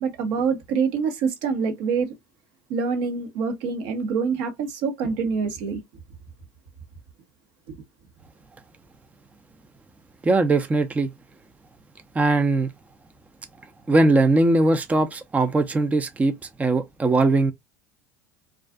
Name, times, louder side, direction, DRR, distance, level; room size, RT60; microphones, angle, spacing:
voice 1, 0.0-2.1 2.7-5.8, right 5 dB, 70° right, 0.9 m, -25 dB
voice 2, 10.2-11.1 12.1-12.7 13.9-17.5, right 2 dB, 15° right, 0.4 m, -20 dB
2.4 x 2.4 x 2.2 m
hypercardioid pair, 80°, 9 cm